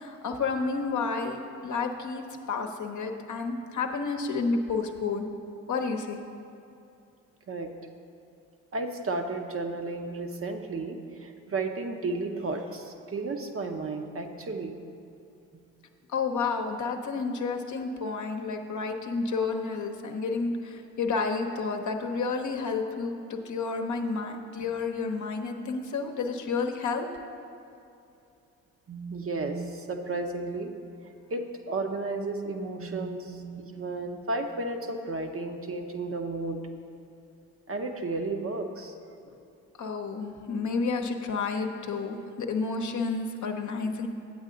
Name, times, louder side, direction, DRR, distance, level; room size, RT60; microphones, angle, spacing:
voice 1, 0.0-5.3 5.7-6.2 16.1-27.1 39.3-39.4 39.8-44.1, left 4 dB, 50° left, 4 dB, 0.9 m, -30 dB
voice 2, 8.7-14.8 28.9-30.7 31.3-36.6 37.7-38.9, right 3 dB, 35° right, 5 dB, 0.8 m, -33 dB
8.5 x 8.2 x 3.8 m, 2.7 s
hypercardioid pair, 45°, 39 cm